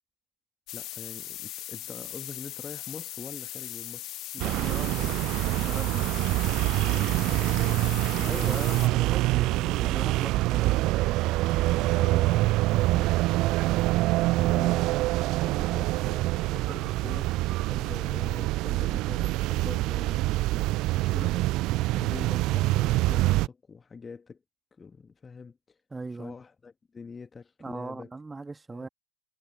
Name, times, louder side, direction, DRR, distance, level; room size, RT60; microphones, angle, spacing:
sound 1, 0.7-8.9, left 15 dB, 35° left, 3.0 m, -39 dB
voice 1, 0.7-4.6 5.0-5.2 6.3-8.7 11.6-13.1 14.5-15.0 15.4-20.5 21.0-21.5 21.9-24.4 24.8-25.8 26.2-28.1 28.7-28.9, left 5 dB, 15° left, 1.9 m, -45 dB
voice 2, 4.3-5.1 5.6-6.1 8.2-10.8 14.3-14.7 25.9-26.3 27.6-28.9, right 3 dB, 10° right, 2.3 m, -39 dB
sound 2, 4.4-23.5, right 19 dB, 40° right, 0.7 m, -25 dB
figure-of-eight pair, 90°, 0 cm